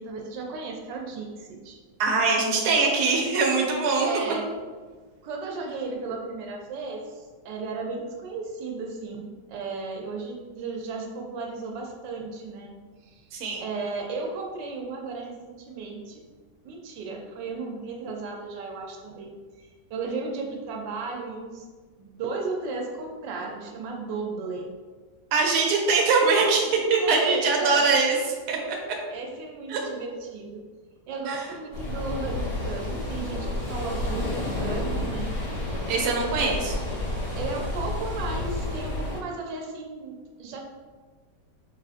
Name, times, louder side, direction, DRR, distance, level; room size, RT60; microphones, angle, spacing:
voice 1, 0.0-1.8 4.0-4.5 5.2-13.3 13.6-16.2 16.6-19.3 19.6-21.7 22.0-24.7 27.0-27.9 29.1-30.6 31.1-35.3 37.4-40.6, right 4 dB, 90° right, 1 dB, 1.3 m, -35 dB
voice 2, 2.0-4.1 13.3-13.6 25.3-28.2 28.5-28.8 29.7-29.8 31.3-31.5 35.9-36.8, right 4 dB, 70° right, 0 dB, 1.2 m, -22 dB
sound 1, 31.7-39.2, left 2 dB, 85° left, 2.0 m, -30 dB
5.2 x 2.4 x 2.4 m, 1.4 s
omnidirectional pair, 1.9 m